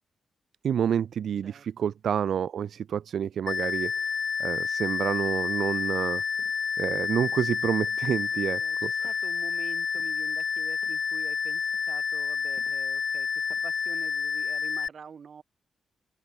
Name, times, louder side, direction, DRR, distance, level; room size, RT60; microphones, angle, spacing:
voice 1, 0.6-4.1 4.4-6.2 6.8-8.9, right 8 dB, 65° right, 1.0 m, -28 dB
voice 2, 1.4-2.0 8.3-15.4, right 6 dB, 45° right, 6.7 m, -47 dB
sound 1, 3.5-14.9, left 6 dB, 45° left, 0.6 m, -29 dB
sound 2, 6.4-6.7 7.2-7.7 8.1-8.3 9.0-9.3 9.8-10.2 10.8-11.2 11.5-11.9 12.5-12.9 13.4-13.8 14.2-14.3, left 1 dB, 5° left, 7.7 m, -58 dB
open air
wide cardioid pair, 140°, 0 cm